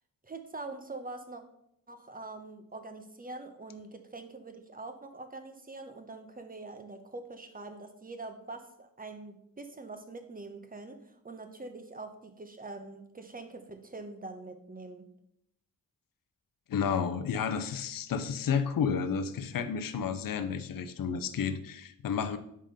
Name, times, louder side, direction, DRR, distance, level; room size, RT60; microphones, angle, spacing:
voice 1, 0.2-1.4 1.9-15.1, right 3 dB, 25° right, 7 dB, 0.9 m, -44 dB
voice 2, 16.7-22.4, left 6 dB, 65° left, 9 dB, 0.6 m, -31 dB
5.6 x 5.2 x 5.2 m, 0.77 s
wide cardioid pair, 95°, 36 cm